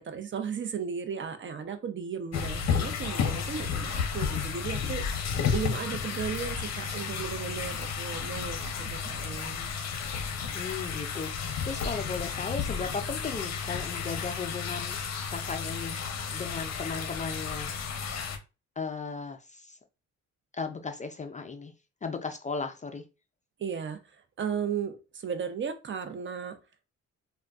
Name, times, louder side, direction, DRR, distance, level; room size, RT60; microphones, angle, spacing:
voice 1, 0.0-9.7 23.6-26.6, right 7 dB, 40° right, 0.6 m, -35 dB
sound 1, 2.3-18.4, left 6 dB, 60° left, 0.7 m, -32 dB
voice 2, 10.5-15.0 15.3-16.0 16.3-17.7 18.8-19.8 20.5-21.7 22.0-23.0, left 5 dB, 25° left, 0.4 m, -36 dB
3.5 x 2.2 x 2.3 m
cardioid pair, 90°, 30 cm